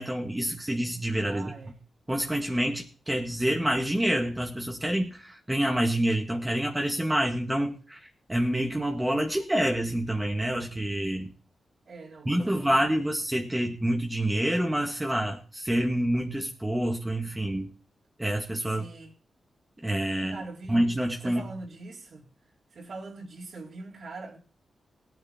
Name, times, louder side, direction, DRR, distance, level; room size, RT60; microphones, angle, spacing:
voice 1, 0.0-1.5 2.1-8.0 8.3-11.3 12.3-17.7 18.2-18.8 19.8-20.4 20.7-21.4, right 1 dB, 15° right, 2.0 m, -27 dB
voice 2, 1.3-1.8 11.9-12.8 18.7-19.2 20.2-20.9 21.2-22.3 22.7-24.4, right 3 dB, 65° right, 3.7 m, -42 dB
18.0 x 9.1 x 4.5 m
cardioid pair, 80°, 0 cm